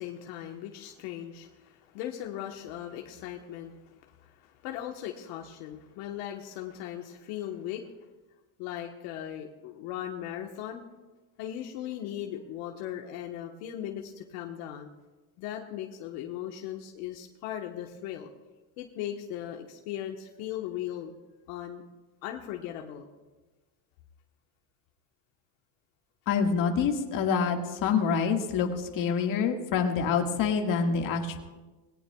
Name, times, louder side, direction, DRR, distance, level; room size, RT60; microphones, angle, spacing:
voice 1, 0.0-7.9 8.6-10.8 11.4-14.9 15.4-18.3 18.8-21.1 21.5-21.8 22.2-23.0, left 11 dB, 65° left, 2 dB, 1.3 m, -38 dB
voice 2, 26.3-31.4, left 6 dB, 40° left, 3 dB, 1.9 m, -26 dB
21.0 x 17.5 x 2.3 m, 1.2 s
supercardioid pair, 145°, 48 cm